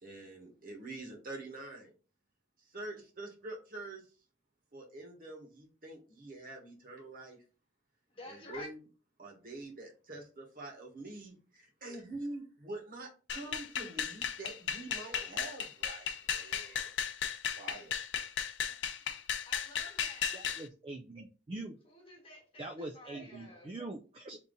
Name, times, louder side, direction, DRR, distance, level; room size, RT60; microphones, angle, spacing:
voice 1, 0.0-1.9 2.6-4.1 4.7-7.4 8.2-8.8 9.2-16.9 17.5-18.0, right 2 dB, 50° right, 1.3 m, -46 dB
voice 2, 8.1-8.7 18.7-18.8 19.4-20.4 21.8-23.7, left 2 dB, 30° left, 1.2 m, -50 dB
sound 1, 13.3-20.6, left 8 dB, 75° left, 0.5 m, -35 dB
voice 3, 20.3-21.8 22.6-24.4, right 2 dB, 30° right, 0.3 m, -43 dB
3.6 x 2.8 x 3.9 m
head